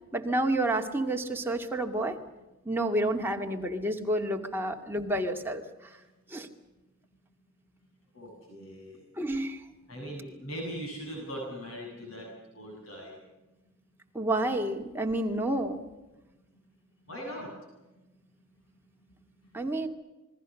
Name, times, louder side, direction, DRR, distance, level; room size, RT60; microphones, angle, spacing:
voice 1, 0.1-2.2 2.7-5.6 6.3-6.5 9.2-9.6 14.1-15.8 19.5-19.9, right 1 dB, 10° right, 2 dB, 2.3 m, -29 dB
voice 2, 8.1-9.0 9.9-12.3 12.5-13.2 17.1-17.5, equal, 85° left, 0 dB, 7.7 m, -40 dB
28.0 x 21.5 x 6.4 m, 1.1 s
head